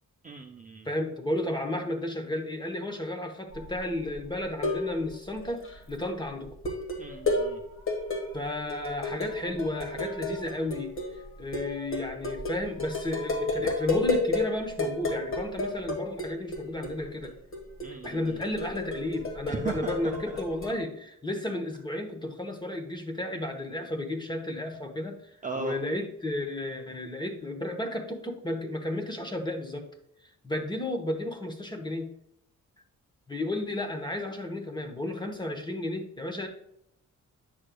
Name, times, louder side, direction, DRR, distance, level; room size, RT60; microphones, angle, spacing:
voice 1, 0.2-0.9 7.0-7.6 17.8-18.4 19.5-20.2 25.4-25.8, right 5 dB, 25° right, 2 dB, 0.5 m, -37 dB
voice 2, 0.8-6.5 8.3-10.9 11.4-17.3 18.0-25.2 25.5-29.9 30.4-32.1 33.3-36.5, left 1 dB, 15° left, 5 dB, 0.9 m, -33 dB
sound 1, 3.5-3.8 4.2-5.1 5.4-5.8 6.5-14.5 14.8-17.0 17.2-20.8, left 2 dB, 40° left, 1.5 m, -32 dB
8.9 x 6.4 x 2.3 m, 0.76 s
wide cardioid pair, 145°, 32 cm